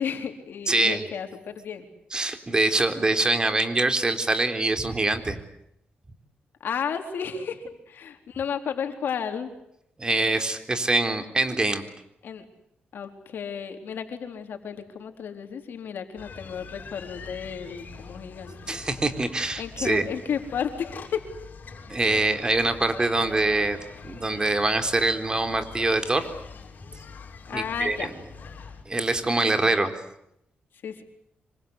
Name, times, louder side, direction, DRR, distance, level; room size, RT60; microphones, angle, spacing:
voice 1, 0.0-1.9 6.6-9.5 12.2-12.5 12.9-18.8 19.6-21.3 21.9-22.0 27.5-28.3 29.6-29.8 30.7-31.0, left 7 dB, 70° left, 5 dB, 4.2 m, -33 dB
voice 2, 0.7-1.1 2.1-5.4 10.0-11.8 18.7-20.0 21.9-23.8 24.0-26.3 27.5-28.1 28.9-29.9, right 2 dB, 25° right, 7 dB, 3.8 m, -24 dB
sound 1, 16.2-28.8, left 5 dB, 55° left, 6.4 m, -44 dB
26.5 x 25.5 x 8.1 m, 0.80 s
cardioid pair, 100°, 4 cm